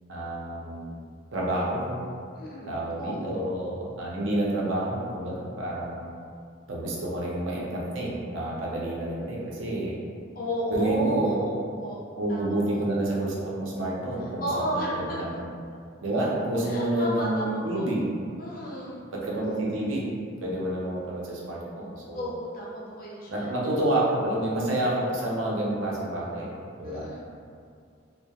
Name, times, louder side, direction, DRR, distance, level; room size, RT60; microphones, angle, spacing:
voice 1, 0.1-1.0 1.3-2.0 2.7-6.1 6.7-10.0 10.7-11.4 12.2-15.5 16.0-18.0 19.1-20.0 20.4-22.3 23.3-26.5 26.8-27.1, right 1 dB, 75° right, -4 dB, 0.5 m, -29 dB
voice 2, 2.4-3.4 10.4-12.0 12.3-12.6 14.2-15.2 16.7-17.9 18.4-19.1 22.1-23.5 26.8-27.2, equal, 45° left, -5 dB, 0.5 m, -33 dB
2.3 x 2.1 x 2.7 m, 2.2 s
head